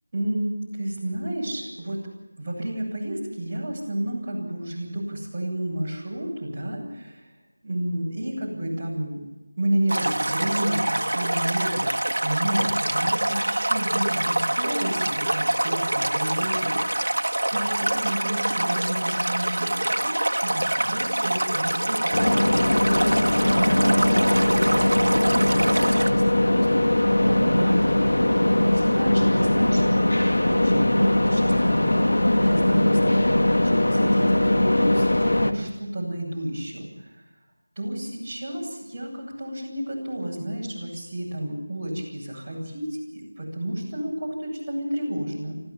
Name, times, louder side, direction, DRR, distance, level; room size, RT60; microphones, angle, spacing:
voice 1, 0.1-2.0 2.4-7.3 7.6-9.2 9.6-32.1 32.4-37.2 37.7-45.6, right 1 dB, 20° right, -7 dB, 8.0 m, -31 dB
Stream, 9.9-26.1, right 1 dB, 85° right, 1.7 m, -25 dB
sound 1, 22.1-35.5, left 1 dB, 75° left, 2.1 m, -20 dB
26.0 x 15.5 x 7.2 m, 1.0 s
figure-of-eight pair, 175°, 0 cm